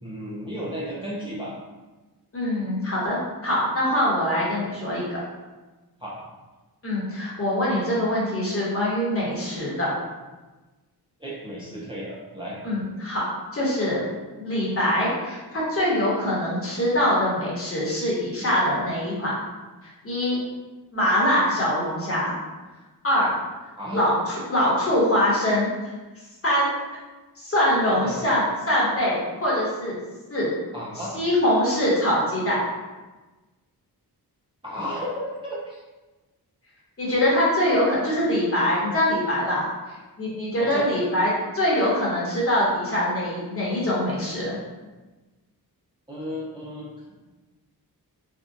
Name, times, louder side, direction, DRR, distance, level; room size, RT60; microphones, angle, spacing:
voice 1, 0.0-1.5 6.0-6.2 11.2-12.6 23.8-24.0 27.9-28.2 30.7-31.2 34.6-35.8 40.6-41.1 46.1-46.9, equal, 15° right, -7 dB, 0.5 m, -33 dB
voice 2, 2.3-5.2 6.8-9.9 12.6-13.2 13.5-14.0 14.4-19.3 20.0-20.4 20.9-22.3 23.0-23.3 23.9-25.9 26.4-26.7 27.4-30.0 30.3-30.5 31.1-32.6 37.0-39.6 40.2-44.6, left 1 dB, 35° left, -6 dB, 1.1 m, -23 dB
3.5 x 2.3 x 2.6 m, 1.2 s
wide cardioid pair, 115°, 39 cm